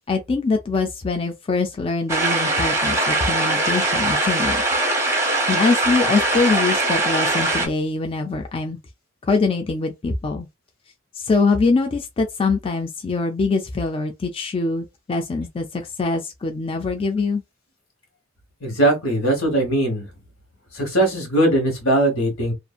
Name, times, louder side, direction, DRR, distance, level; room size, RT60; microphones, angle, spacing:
voice 1, 0.1-4.6 5.5-8.8 9.2-10.5 11.2-17.4, left 3 dB, 30° left, 0.4 m, -23 dB
sound 1, 2.1-7.7, right 2 dB, 15° right, 0.7 m, -21 dB
voice 2, 18.6-20.1 20.7-22.5, right 1 dB, 80° left, 1.3 m, -20 dB
2.6 x 2.5 x 2.3 m
head